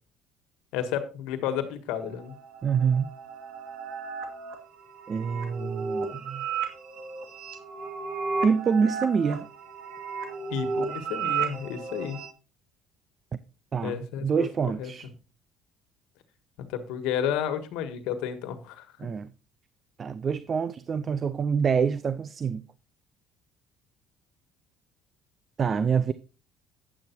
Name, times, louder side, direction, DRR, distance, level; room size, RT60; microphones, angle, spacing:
voice 1, 0.7-2.3 10.5-12.2 13.8-14.3 14.8-14.9 16.7-18.9, left 9 dB, 85° left, 1.4 m, -31 dB
sound 1, 1.9-12.3, right 5 dB, 70° right, 2.3 m, -34 dB
voice 2, 2.6-3.1 5.1-6.5 8.4-9.5 13.7-15.1 19.0-19.3 20.0-22.6 25.6-26.1, right 6 dB, 35° right, 0.5 m, -26 dB
9.9 x 8.0 x 4.4 m
cardioid pair, 115°, 0 cm